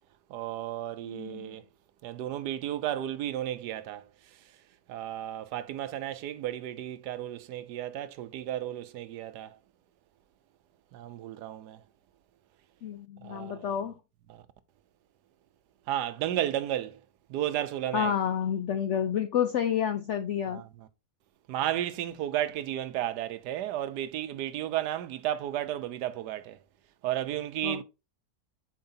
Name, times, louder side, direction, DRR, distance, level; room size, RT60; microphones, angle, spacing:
voice 1, 0.3-1.6 2.0-4.0 4.9-9.6 10.9-11.8 13.2-13.8 14.3-14.4 15.9-17.0 17.3-18.1 20.5-20.9 21.5-26.6 27.0-27.8, right 12 dB, 90° right, 1.2 m, -33 dB
voice 2, 1.0-1.6 12.8-13.9 17.9-20.6 27.6-27.8, left 8 dB, 75° left, 0.6 m, -29 dB
7.4 x 4.8 x 2.7 m
omnidirectional pair, 1.8 m